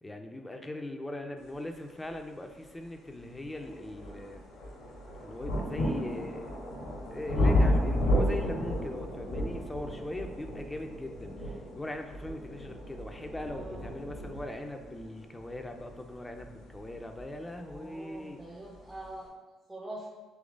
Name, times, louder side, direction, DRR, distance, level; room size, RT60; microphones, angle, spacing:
voice 1, 0.0-4.4 5.2-6.5 7.1-18.4, left 1 dB, 15° left, 5 dB, 0.6 m, -40 dB
sound 1, 2.5-2.6 3.2-17.9 18.8-18.9, left 1 dB, 85° left, 1.1 m, -32 dB
voice 2, 13.5-13.9 17.6-19.3 19.7-20.1, right 1 dB, 15° right, -3 dB, 0.7 m, -44 dB
3.9 x 3.0 x 3.7 m, 1.3 s
supercardioid pair, 60°, 0 cm